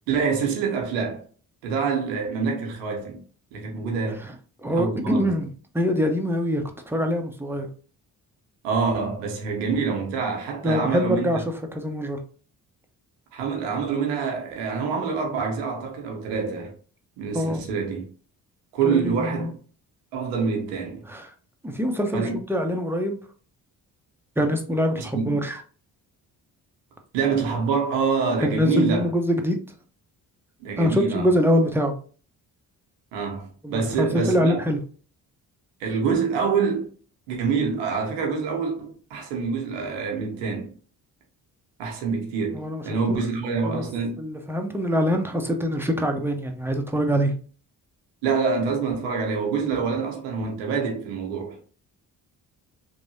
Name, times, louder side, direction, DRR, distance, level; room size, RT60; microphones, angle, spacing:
voice 1, 0.1-1.2 1.6-3.2 3.5-4.2 4.6-5.4 8.6-11.3 13.3-16.7 17.2-18.1 18.7-19.5 20.1-21.1 22.1-22.4 25.0-25.4 27.1-29.1 30.6-31.3 33.1-34.6 35.8-36.9 37.3-40.7 41.8-44.2 48.2-51.6, right 5 dB, 85° right, 0.9 m, -26 dB
voice 2, 4.6-5.5 5.7-7.7 10.6-11.4 11.7-12.2 17.3-17.6 18.8-19.5 21.1-21.3 21.6-23.2 24.4-25.6 28.4-29.6 30.8-31.9 33.6-34.8 42.5-43.2 43.6-43.8 44.2-47.3, equal, 5° right, 0.8 m, -24 dB
3.1 x 2.6 x 2.7 m
hypercardioid pair, 45°, 46 cm